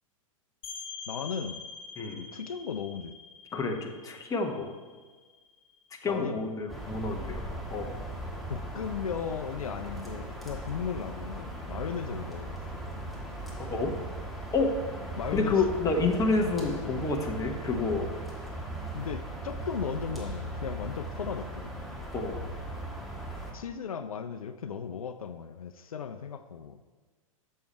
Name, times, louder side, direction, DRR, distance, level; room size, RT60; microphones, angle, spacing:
sound 1, 0.6-6.1, left 5 dB, 40° left, 2.0 m, -45 dB
voice 1, 1.1-1.6 2.1-3.1 6.1-6.5 8.5-12.6 15.2-15.6 16.6-17.0 18.9-21.7 23.5-26.8, left 7 dB, 80° left, 9 dB, 0.4 m, -36 dB
voice 2, 3.5-4.7 6.0-7.4 7.7-7.9 13.6-13.9 14.5-14.7 15.3-18.1 22.1-22.4, left 3 dB, 20° left, 2 dB, 1.1 m, -29 dB
sound 2, 6.7-23.5, right 1 dB, ahead, 1.5 m, -38 dB
7.0 x 6.4 x 4.3 m, 1.4 s
figure-of-eight pair, 100°, 18 cm